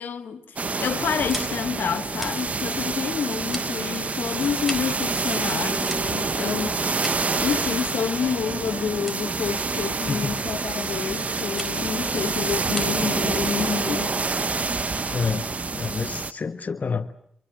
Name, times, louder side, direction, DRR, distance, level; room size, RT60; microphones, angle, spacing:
voice 1, 0.0-7.1 7.4-14.1, left 7 dB, 80° left, 1.7 m, -29 dB
sound 1, 0.6-16.3, right 4 dB, 45° right, 1.2 m, -27 dB
sound 2, 1.1-15.4, equal, 5° right, 4.0 m, -41 dB
sound 3, 8.2-14.1, right 7 dB, 70° right, 1.0 m, -41 dB
voice 2, 15.1-17.1, left 5 dB, 55° left, 1.4 m, -28 dB
28.0 x 24.0 x 7.7 m
supercardioid pair, 45°, 3 cm